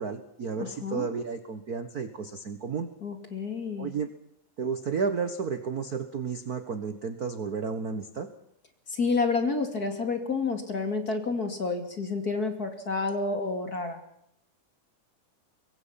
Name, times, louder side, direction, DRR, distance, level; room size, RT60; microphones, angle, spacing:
voice 1, 0.0-2.9 3.8-4.1 4.6-8.3, right 5 dB, 50° right, 9 dB, 1.1 m, -32 dB
voice 2, 0.6-1.1 3.0-3.9 8.9-14.0, left 4 dB, 30° left, 6 dB, 2.7 m, -29 dB
25.0 x 22.5 x 5.8 m, 0.76 s
omnidirectional pair, 3.7 m